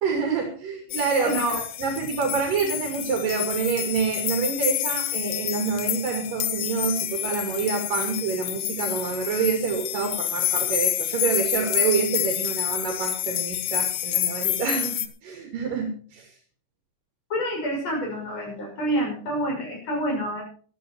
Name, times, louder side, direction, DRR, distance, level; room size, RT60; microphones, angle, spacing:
voice 1, 0.0-16.3, right 5 dB, 60° right, 2 dB, 4.0 m, -27 dB
sound 1, 0.9-15.1, left 12 dB, 70° left, 1.9 m, -28 dB
voice 2, 1.2-1.6 17.3-20.4, equal, 40° left, -1 dB, 7.2 m, -27 dB
14.0 x 13.0 x 4.5 m, 0.43 s
omnidirectional pair, 4.4 m